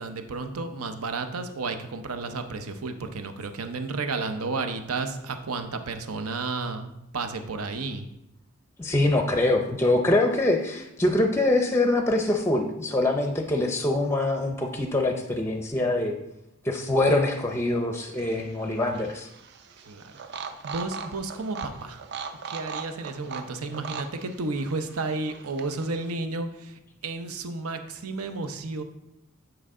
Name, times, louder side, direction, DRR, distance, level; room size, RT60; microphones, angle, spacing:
voice 1, 0.0-8.0 19.9-20.1 20.6-22.0 22.4-28.8, right 3 dB, 85° right, 7 dB, 0.7 m, -32 dB
voice 2, 8.8-16.2 16.6-19.3, left 2 dB, 10° left, 4 dB, 0.5 m, -24 dB
sound 1, 17.9-26.1, right 5 dB, 50° right, 0.5 m, -40 dB
8.8 x 4.6 x 3.7 m, 0.86 s
head